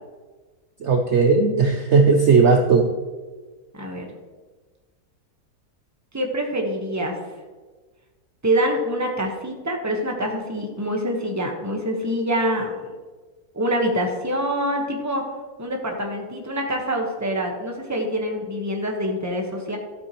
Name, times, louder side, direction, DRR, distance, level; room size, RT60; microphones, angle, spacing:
voice 1, 0.8-2.9, right 4 dB, 55° right, 3 dB, 0.9 m, -17 dB
voice 2, 3.7-4.0 6.1-7.2 8.4-12.9 13.5-15.2 15.6-19.8, equal, 10° right, 1 dB, 1.2 m, -25 dB
12.5 x 8.3 x 3.1 m, 1.3 s
omnidirectional pair, 1.7 m